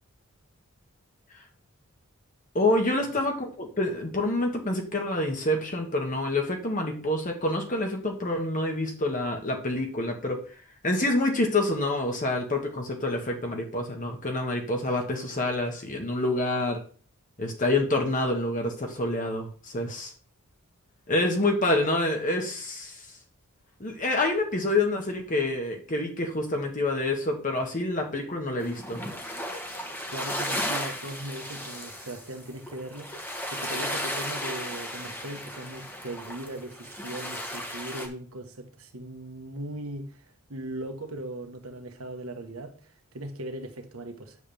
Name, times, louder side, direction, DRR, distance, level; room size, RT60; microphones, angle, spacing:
voice 1, 2.5-10.4 10.8-16.8 17.4-20.1 21.1-23.1 23.8-29.0, left 2 dB, 35° left, 1.5 m, -27 dB
sound 1, 28.6-38.1, equal, 10° left, 1.4 m, -35 dB
voice 2, 30.1-33.1 33.4-44.4, right 1 dB, 75° right, 1.4 m, -39 dB
9.6 x 7.4 x 3.5 m
head